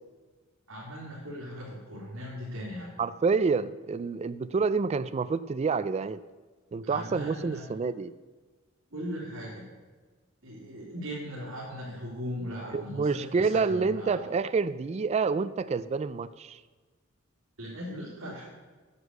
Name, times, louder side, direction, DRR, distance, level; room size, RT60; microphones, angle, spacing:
voice 1, 0.7-2.9 6.8-7.6 8.9-9.7 10.4-14.2 17.6-18.4, equal, 80° right, -8 dB, 3.2 m, -38 dB
voice 2, 3.0-6.2 6.7-8.1 12.7-16.6, right 4 dB, 30° right, 13 dB, 0.3 m, -28 dB
9.6 x 8.0 x 6.5 m, 1.3 s
head